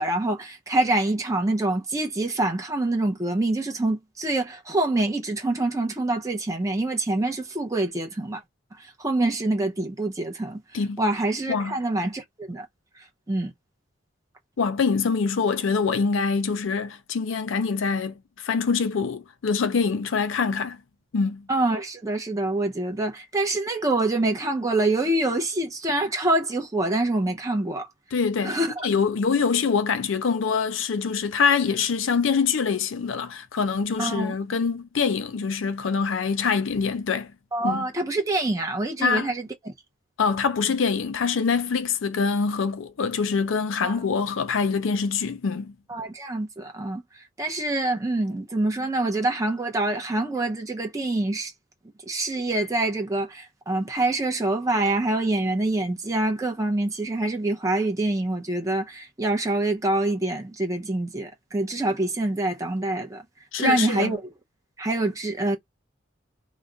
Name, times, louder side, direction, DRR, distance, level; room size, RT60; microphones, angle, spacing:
voice 1, 0.0-8.4 9.0-10.6 11.0-12.7 13.3-13.5 21.5-27.9 28.4-28.9 34.0-34.3 37.5-39.7 43.8-44.0 45.9-47.0 47.4-51.5 52.1-63.2 63.6-64.3 64.8-65.6, right 2 dB, 15° right, 0.5 m, -25 dB
voice 2, 14.6-20.8 21.1-21.5 28.1-37.3 37.6-37.9 39.0-39.3 40.2-45.7 63.5-64.1, left 5 dB, 80° left, 0.5 m, -24 dB
2.4 x 2.0 x 3.7 m
head